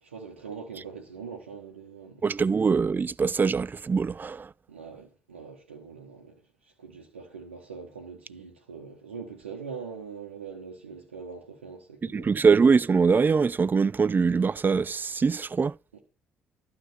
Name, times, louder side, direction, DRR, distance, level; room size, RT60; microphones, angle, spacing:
voice 1, 0.0-2.3 4.7-12.3 15.9-16.0, right 5 dB, 90° right, 1.4 m, -42 dB
voice 2, 2.2-4.5 12.0-15.8, right 5 dB, 30° right, 0.4 m, -23 dB
12.0 x 5.6 x 7.2 m
hypercardioid pair, 50°, 6 cm